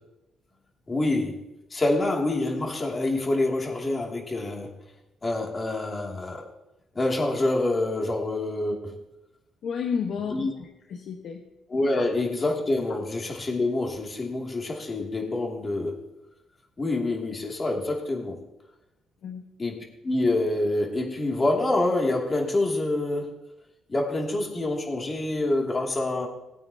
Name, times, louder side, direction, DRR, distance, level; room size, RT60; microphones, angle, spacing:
voice 1, 0.9-1.4 1.7-4.7 5.2-6.4 6.9-9.0 10.3-10.5 11.7-16.0 16.8-18.4 19.6-23.4 23.9-26.3, left 2 dB, 30° left, 0 dB, 2.6 m, -26 dB
voice 2, 9.6-11.4 11.9-12.0 19.2-19.4, left 6 dB, 70° left, 2 dB, 1.3 m, -32 dB
20.0 x 9.1 x 2.9 m, 0.95 s
cardioid pair, 90°, 0 cm